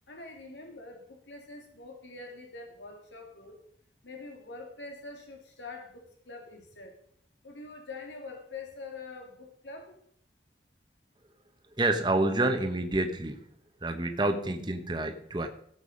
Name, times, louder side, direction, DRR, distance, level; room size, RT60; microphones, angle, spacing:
voice 1, 0.1-3.6 4.0-7.0 7.4-10.0, left 3 dB, 90° left, 2 dB, 2.6 m, -45 dB
voice 2, 11.7-13.5 13.8-15.5, right 2 dB, 25° right, 6 dB, 1.0 m, -28 dB
16.5 x 7.0 x 5.3 m, 0.66 s
head